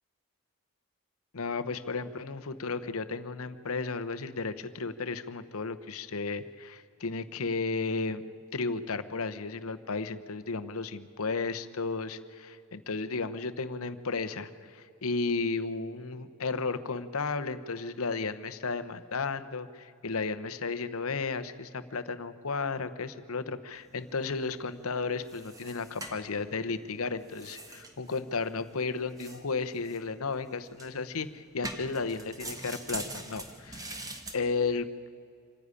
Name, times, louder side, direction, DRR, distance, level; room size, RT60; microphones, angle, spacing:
voice 1, 1.3-8.2 8.5-33.9 34.3-34.9, left 4 dB, 70° left, 11 dB, 0.9 m, -34 dB
sound 1, 23.7-34.4, right 2 dB, 15° right, 1.4 m, -45 dB
26.0 x 10.5 x 9.7 m, 2.4 s
head